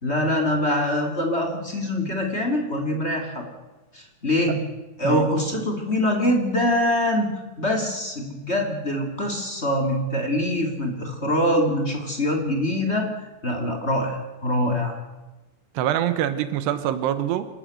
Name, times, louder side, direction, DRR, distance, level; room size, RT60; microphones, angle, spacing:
voice 1, 0.0-3.5 3.9-4.6 5.0-7.3 7.6-15.0, left 1 dB, 20° left, 3 dB, 2.2 m, -24 dB
voice 2, 15.7-17.5, right 11 dB, 85° right, 12 dB, 3.2 m, -24 dB
27.0 x 13.5 x 7.9 m, 1.1 s
omnidirectional pair, 4.7 m